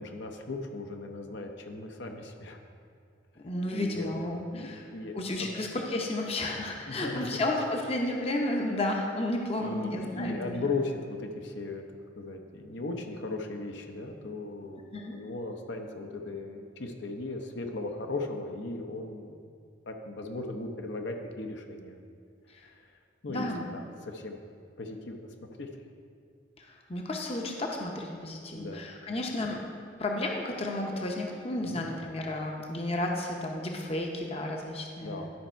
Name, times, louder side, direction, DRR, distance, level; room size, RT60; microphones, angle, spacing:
voice 1, 0.0-2.6 3.7-4.1 4.5-5.7 6.9-7.4 9.6-11.8 12.2-19.4 19.9-22.0 22.6-22.9 23.2-24.4 24.8-25.7 28.5-28.8 31.6-31.8 35.0-35.3, left 2 dB, 65° left, 3 dB, 0.7 m, -37 dB
voice 2, 3.4-4.8 5.1-10.6 14.9-15.1 22.5-22.6 23.3-23.7 26.6-29.6 30.0-35.3, left 1 dB, 30° left, 1 dB, 0.7 m, -32 dB
11.5 x 5.5 x 4.4 m, 2.2 s
head